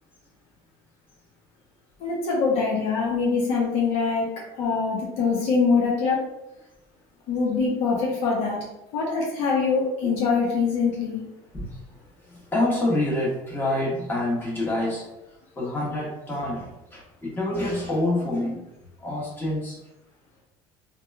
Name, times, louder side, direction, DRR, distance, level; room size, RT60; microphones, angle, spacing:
voice 1, 2.0-4.3 4.6-6.2 7.3-8.6 8.9-11.2, left 4 dB, 65° left, -3 dB, 0.7 m, -23 dB
voice 2, 11.5-15.1 15.6-18.6 19.0-19.8, left 1 dB, 20° left, -5 dB, 1.2 m, -27 dB
2.8 x 2.2 x 2.3 m, 0.92 s
supercardioid pair, 95°, 11 cm